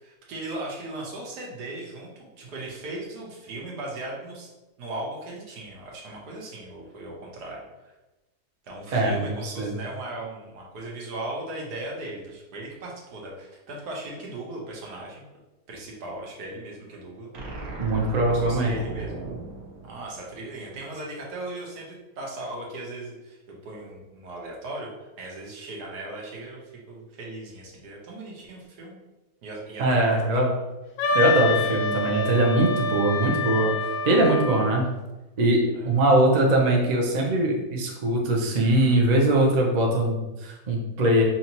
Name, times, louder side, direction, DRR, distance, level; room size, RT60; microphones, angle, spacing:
voice 1, 0.0-4.5 4.8-7.9 8.6-15.2 15.7-17.3 18.3-19.2 19.8-21.9 22.2-24.9 25.2-26.6 26.9-29.0 29.4-30.3 35.7-35.9, right 2 dB, 85° right, -2 dB, 1.5 m, -37 dB
voice 2, 8.9-9.7 17.8-18.7 29.8-30.5 31.1-33.7 34.0-34.9 35.4-41.2, right 1 dB, 50° right, -1 dB, 0.5 m, -22 dB
sound 1, 17.3-20.7, right 2 dB, 65° right, 1.2 m, -37 dB
Wind instrument woodwind instrument, 31.0-34.8, left 3 dB, 70° left, 0.9 m, -27 dB
4.9 x 2.8 x 2.9 m, 1.1 s
omnidirectional pair, 1.7 m